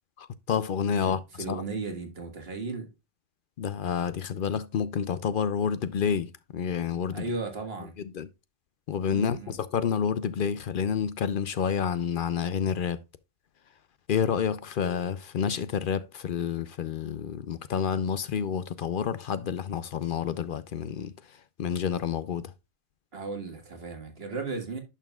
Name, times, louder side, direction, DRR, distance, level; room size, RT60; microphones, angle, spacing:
voice 1, 0.2-1.2 1.5-1.6 3.6-7.3 8.0-8.3 8.9-13.0 14.1-21.1 21.6-22.5, left 7 dB, 60° left, 0.7 m, -29 dB
voice 2, 1.1-2.9 7.1-8.0 9.1-9.6 23.1-24.8, right 3 dB, 70° right, 1.9 m, -35 dB
11.0 x 5.8 x 2.3 m
omnidirectional pair, 1.0 m